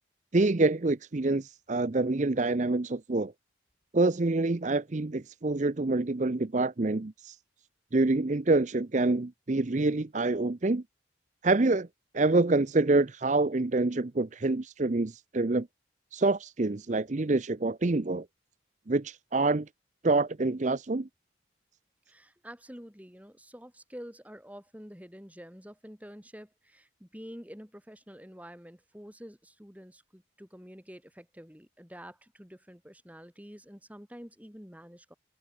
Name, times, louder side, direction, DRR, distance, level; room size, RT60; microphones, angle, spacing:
voice 1, 0.3-3.3 3.9-7.4 7.9-10.8 11.4-11.9 12.1-15.7 16.1-18.2 18.9-19.7 20.0-21.1, right 2 dB, 40° right, 0.6 m, -26 dB
voice 2, 22.1-35.1, equal, 10° right, 5.7 m, -48 dB
head